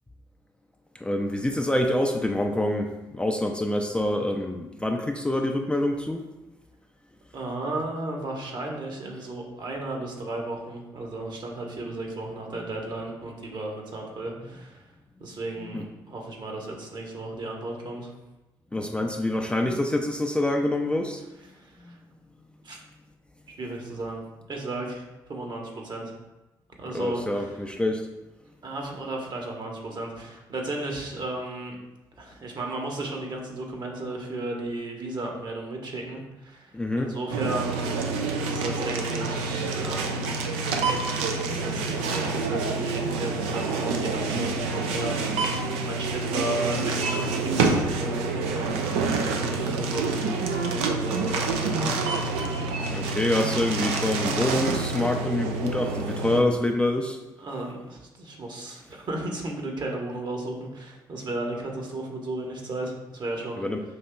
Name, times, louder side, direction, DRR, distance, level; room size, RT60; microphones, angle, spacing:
voice 1, 0.9-6.2 12.6-12.7 15.6-15.9 18.7-21.2 21.8-22.0 26.9-28.1 36.7-37.1 41.1-41.8 52.9-57.2 63.6-63.8, left 1 dB, 10° left, 2 dB, 0.4 m, -26 dB
voice 2, 7.3-14.8 15.2-18.1 21.5-22.0 22.6-22.8 23.6-24.2 24.5-26.1 26.8-27.5 28.6-31.8 32.2-40.4 41.5-48.8 49.2-51.9 57.4-63.6, right 2 dB, 50° right, 0 dB, 1.0 m, -34 dB
sound 1, 37.3-56.4, right 3 dB, 80° right, 0.4 m, -27 dB
5.2 x 2.8 x 2.2 m, 1.0 s
hypercardioid pair, 50°, 10 cm